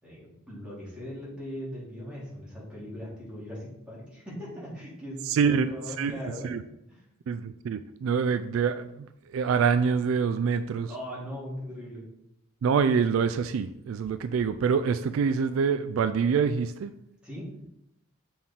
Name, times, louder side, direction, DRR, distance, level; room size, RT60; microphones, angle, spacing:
voice 1, 0.0-6.5 10.9-12.0 17.2-17.5, equal, 5° right, -8 dB, 2.7 m, -39 dB
voice 2, 5.3-5.7 6.0-6.1 6.4-6.6 7.3-10.9 12.6-16.9, right 6 dB, 70° right, 11 dB, 0.3 m, -26 dB
7.2 x 4.3 x 3.7 m, 0.80 s
head